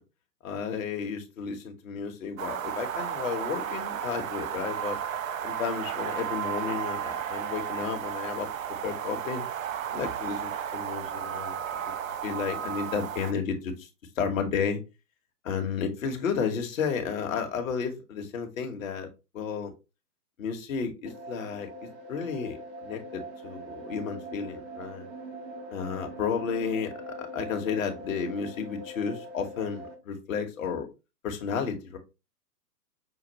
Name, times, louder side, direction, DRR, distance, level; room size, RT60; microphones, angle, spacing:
voice 1, 0.4-5.0 5.4-8.5 8.8-9.4 9.9-11.6 12.2-13.9 14.2-14.8 15.4-19.1 19.3-19.7 20.4-25.1 25.7-30.9 31.2-32.0, left 6 dB, 50° left, 5 dB, 1.1 m, -32 dB
sound 1, 2.4-13.3, right 9 dB, 55° right, 0.5 m, -33 dB
sound 2, 21.1-29.9, right 1 dB, 90° right, 1.6 m, -42 dB
5.7 x 2.4 x 2.9 m, 0.27 s
hypercardioid pair, 140°, 50 cm